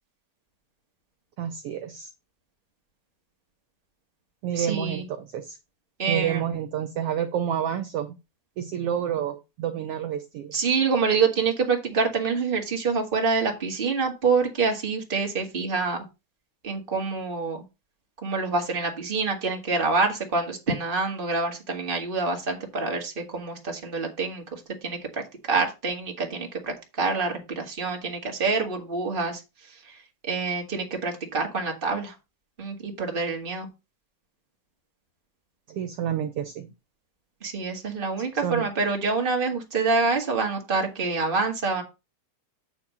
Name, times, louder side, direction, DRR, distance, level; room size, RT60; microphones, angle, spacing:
voice 1, 1.4-2.1 4.4-5.6 6.1-8.2 8.6-10.5 35.7-36.7 38.4-38.7, right 9 dB, 80° right, 7 dB, 1.3 m, -29 dB
voice 2, 4.6-5.0 6.0-6.4 10.5-16.0 16.6-17.6 18.2-25.2 25.5-29.4 29.8-30.0 30.2-32.1 32.6-33.7 37.4-41.8, right 4 dB, 25° right, 2 dB, 1.1 m, -26 dB
8.6 x 3.5 x 6.3 m, 0.26 s
omnidirectional pair, 3.6 m